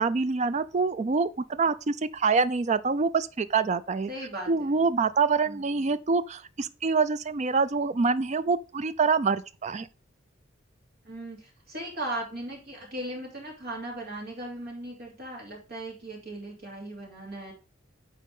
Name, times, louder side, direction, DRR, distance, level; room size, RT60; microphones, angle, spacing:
voice 1, 0.0-4.1 4.5-9.9, right 4 dB, 35° right, 0.4 m, -26 dB
voice 2, 4.1-4.8 5.4-6.0 11.0-17.5, right 1 dB, 55° right, 2.9 m, -38 dB
9.1 x 4.2 x 3.7 m
head